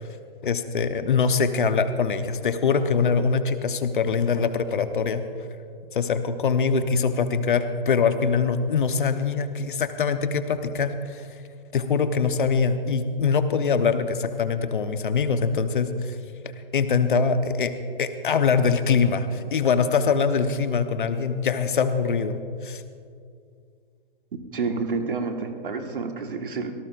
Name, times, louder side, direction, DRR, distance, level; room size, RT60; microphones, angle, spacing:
voice 1, 0.4-5.2 5.9-11.2 11.7-16.2 16.7-17.7 18.0-22.8, left 5 dB, 60° left, 9 dB, 1.2 m, -23 dB
voice 2, 24.3-26.7, right 4 dB, 60° right, 5 dB, 1.7 m, -29 dB
25.0 x 18.5 x 2.6 m, 2.3 s
figure-of-eight pair, 120°, 29 cm